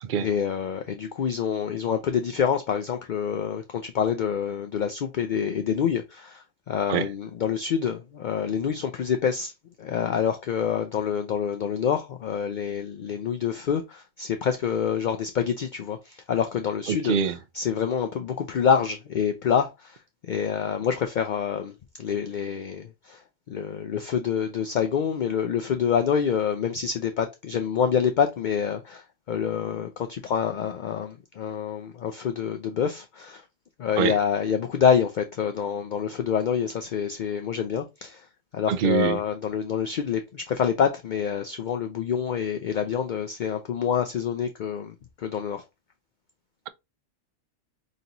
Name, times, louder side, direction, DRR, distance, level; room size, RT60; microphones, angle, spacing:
voice 1, 0.1-9.5 9.8-17.2 17.5-20.0 20.2-21.7 22.0-23.2 23.5-33.4 33.8-38.3 38.5-45.6, left 7 dB, 60° left, 0.5 m, -27 dB
voice 2, 16.9-17.4 34.0-34.2 38.7-39.2, right 7 dB, 60° right, 0.5 m, -24 dB
5.2 x 2.9 x 2.6 m
omnidirectional pair, 1.3 m